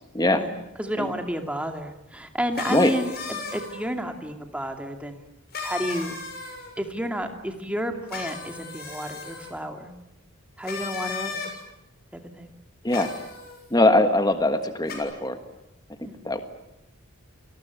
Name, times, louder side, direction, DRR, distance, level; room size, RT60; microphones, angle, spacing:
voice 1, 0.8-5.3 5.6-6.2 6.8-9.9 10.6-11.6 12.1-12.5 16.0-16.2, equal, 5° right, 5 dB, 2.5 m, -31 dB
sound 1, 2.5-3.8 5.5-6.7 8.1-9.5 10.6-11.5 12.9-13.6 14.9-15.0, left 4 dB, 45° left, 6.5 m, -35 dB
voice 2, 13.7-15.4 16.2-16.4, left 2 dB, 20° left, 8 dB, 1.5 m, -21 dB
28.5 x 20.5 x 9.6 m, 0.87 s
head